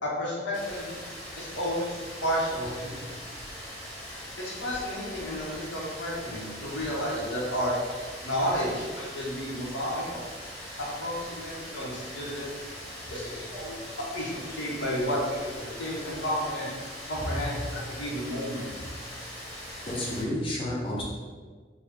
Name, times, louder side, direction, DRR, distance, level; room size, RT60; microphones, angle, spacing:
voice 1, 0.0-0.9 1.4-3.1 4.4-7.7 8.2-10.2 10.8-12.4 13.1-13.8 14.1-16.7 17.1-17.5 17.9-18.7, equal, 80° left, -5 dB, 1.1 m, -32 dB
Rain, 0.5-20.2, equal, 5° left, 1.0 m, -41 dB
voice 2, 2.8-3.4 13.0-13.4 17.3-18.2 18.8-19.2 19.9-21.0, left 1 dB, 30° left, -3 dB, 0.7 m, -34 dB
3.6 x 2.3 x 3.3 m, 1.5 s
head